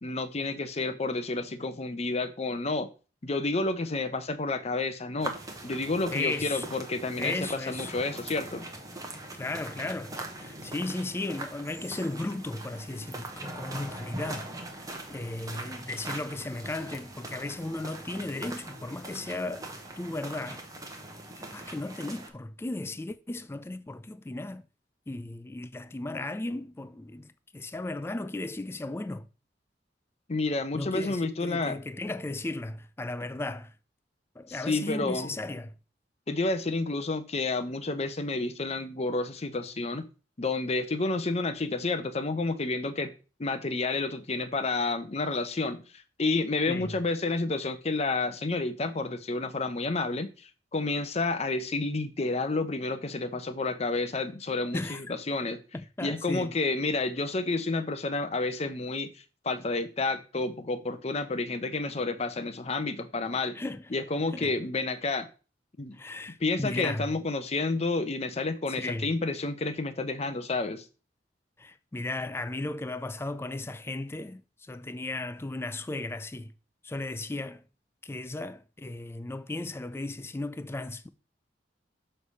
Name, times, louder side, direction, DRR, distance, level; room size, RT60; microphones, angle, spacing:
voice 1, 0.0-2.9 3.2-5.3 5.6-8.7 30.3-31.8 34.5-35.3 36.3-40.1 40.4-43.1 43.4-45.8 46.2-55.6 56.0-59.1 59.4-63.6 63.9-65.3 65.8-66.0 66.4-70.8, left 3 dB, 35° left, 0.7 m, -30 dB
sound 1, 5.2-22.3, right 2 dB, 20° right, 1.0 m, -41 dB
voice 2, 6.1-6.7 7.2-7.9 9.3-14.5 14.8-19.7 20.0-20.6 21.4-24.6 25.1-29.3 30.7-33.7 34.4-35.7 46.7-47.0 54.7-55.0 55.7-56.6 63.5-63.9 64.3-64.5 65.9-67.1 68.8-69.1 71.6-76.5 76.8-77.6 78.0-81.1, left 2 dB, 15° left, 0.4 m, -35 dB
6.6 x 3.3 x 5.4 m
head